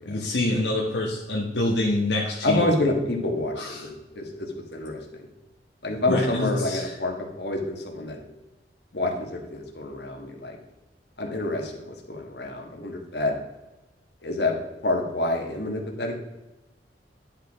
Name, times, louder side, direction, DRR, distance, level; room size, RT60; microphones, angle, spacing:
voice 1, 0.1-2.8 3.6-3.8 6.1-6.9, left 1 dB, 80° left, -1 dB, 1.1 m, -26 dB
voice 2, 2.4-5.3 5.8-8.2 8.9-10.6 11.2-13.3 14.2-14.5 14.8-16.2, left 2 dB, 65° left, 1 dB, 1.4 m, -28 dB
10.0 x 5.1 x 3.5 m, 1.0 s
head